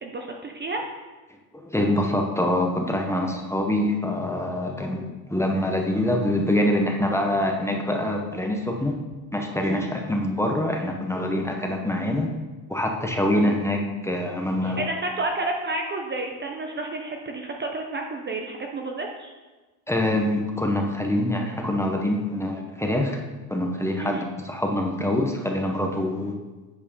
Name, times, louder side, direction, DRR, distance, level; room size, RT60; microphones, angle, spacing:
voice 1, 0.0-0.8 9.6-9.9 13.4-13.6 14.6-19.3 24.0-24.2, right 2 dB, 25° right, 2 dB, 0.6 m, -30 dB
voice 2, 1.5-8.9 9.3-12.3 12.7-14.8 19.9-23.2 23.5-26.3, left 1 dB, 5° left, 1 dB, 0.8 m, -25 dB
8.8 x 4.5 x 5.4 m, 1.2 s
cardioid pair, 130°, 45 cm